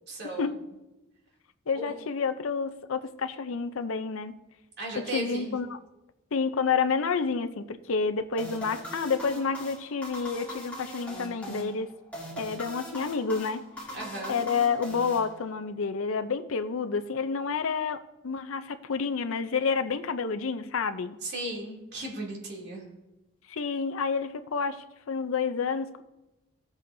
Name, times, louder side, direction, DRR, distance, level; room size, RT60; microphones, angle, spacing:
voice 1, 0.1-0.5 1.7-1.9 4.8-5.6 13.9-14.4 21.2-22.8, right 1 dB, 50° right, 2.7 m, -36 dB
voice 2, 1.7-4.3 5.0-5.8 6.3-11.9 12.4-13.6 14.3-21.2 23.5-26.0, left 5 dB, 70° left, 0.5 m, -29 dB
sound 1, 8.4-15.8, equal, 5° left, 2.7 m, -41 dB
16.0 x 8.1 x 2.7 m
head